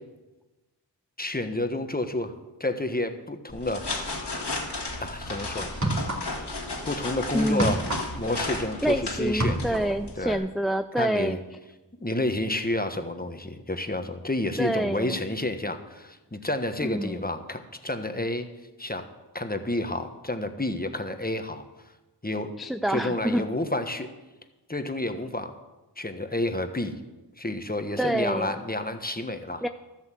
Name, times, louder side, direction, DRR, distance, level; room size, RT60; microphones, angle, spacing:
voice 1, 1.2-2.3 2.6-3.9 5.0-5.7 6.8-7.8 8.1-10.4 11.0-11.4 12.0-18.5 18.8-19.1 19.3-21.6 22.2-22.5 22.9-24.1 24.7-25.5 26.0-27.0 27.4-29.6, left 1 dB, 20° left, 7 dB, 1.2 m, -30 dB
sound 1, 3.5-10.4, left 2 dB, 65° left, 2.0 m, -34 dB
sound 2, 4.9-5.1 5.7-6.6 6.8-9.0 9.2-10.0, right 1 dB, 40° right, 2.5 m, -29 dB
voice 2, 7.3-7.7 8.8-11.4 14.6-15.2 16.8-17.2 22.6-23.4 28.0-28.6 29.6-29.7, right 1 dB, ahead, 9 dB, 0.4 m, -27 dB
13.0 x 8.1 x 7.6 m, 1.1 s
wide cardioid pair, 50°, 43 cm